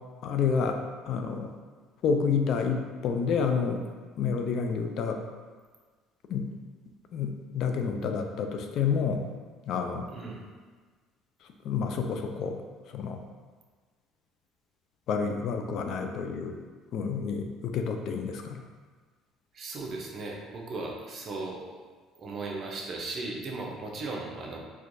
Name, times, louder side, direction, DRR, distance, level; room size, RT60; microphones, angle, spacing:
voice 1, 0.2-0.8 1.1-1.5 2.0-3.8 4.2-5.2 6.3-6.5 7.1-9.3 9.7-10.1 11.6-12.6 12.9-13.2 15.1-16.6 16.9-18.6, left 6 dB, 60° left, 5 dB, 0.3 m, -29 dB
voice 2, 10.1-10.4 19.5-21.8 22.2-24.6, right 3 dB, 45° right, -1 dB, 0.6 m, -37 dB
4.4 x 2.3 x 2.6 m, 1.4 s
cardioid pair, 110°, 0 cm